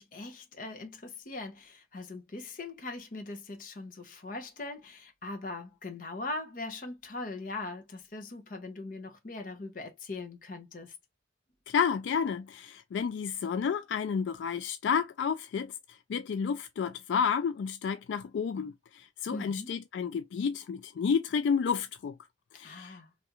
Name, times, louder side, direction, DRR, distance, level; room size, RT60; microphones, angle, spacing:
voice 1, 0.0-11.0 19.3-19.7 22.6-23.1, left 2 dB, 45° left, 0.8 m, -41 dB
voice 2, 11.7-15.7 16.1-22.2 22.6-23.0, left 6 dB, 80° left, 0.3 m, -31 dB
3.3 x 2.4 x 2.8 m
head